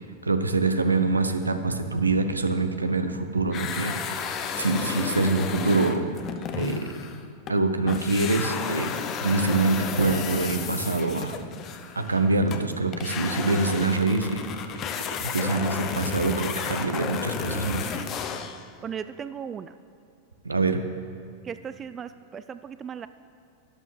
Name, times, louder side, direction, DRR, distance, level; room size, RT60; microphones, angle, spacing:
voice 1, 0.2-4.2 4.6-6.1 6.5-6.8 7.5-11.4 12.0-14.4 15.2-17.9 20.4-20.8, right 3 dB, 80° right, 8 dB, 0.7 m, -25 dB
sound 1, 3.5-7.6 7.9-18.7, left 7 dB, 35° left, 0.7 m, -33 dB
voice 2, 18.8-19.7 21.4-23.1, right 7 dB, 25° right, 12 dB, 0.3 m, -36 dB
12.5 x 11.0 x 3.3 m, 2.6 s
figure-of-eight pair, 90°, 0 cm